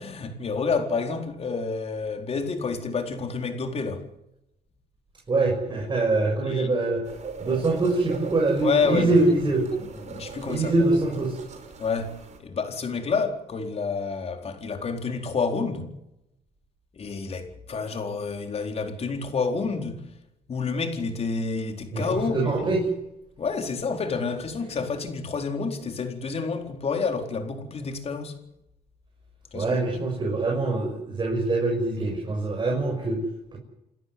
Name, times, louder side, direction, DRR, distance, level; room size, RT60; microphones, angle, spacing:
voice 1, 0.0-4.1 6.5-6.7 8.6-9.3 9.7-10.9 11.8-15.9 16.9-20.0 20.5-22.7 23.4-28.4 29.5-30.1, left 4 dB, 35° left, 4.3 m, -29 dB
voice 2, 5.3-7.0 7.4-9.6 10.5-11.3 21.9-22.8 29.5-33.2 33.5-33.6, right 2 dB, 25° right, 6.7 m, -24 dB
sound 1, 7.0-12.4, right 5 dB, 45° right, 5.4 m, -40 dB
28.5 x 13.5 x 9.6 m
cardioid pair, 110°, 17 cm